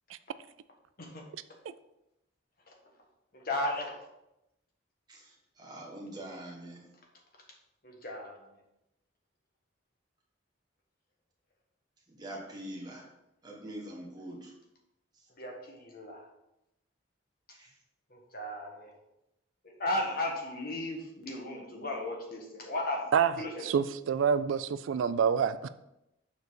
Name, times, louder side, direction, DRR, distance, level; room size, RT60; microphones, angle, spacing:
voice 1, 3.3-4.0 7.8-8.4 15.4-16.2 18.1-18.9 19.6-23.1 23.4-23.7, left 1 dB, 50° left, 0 dB, 1.4 m, -35 dB
voice 2, 5.6-6.8 12.2-13.0 13.4-14.5 17.6-17.7, right 1 dB, 20° right, -3 dB, 1.7 m, -43 dB
voice 3, 23.1-25.7, right 7 dB, 85° right, 13 dB, 0.3 m, -27 dB
7.0 x 4.0 x 4.8 m, 0.86 s
head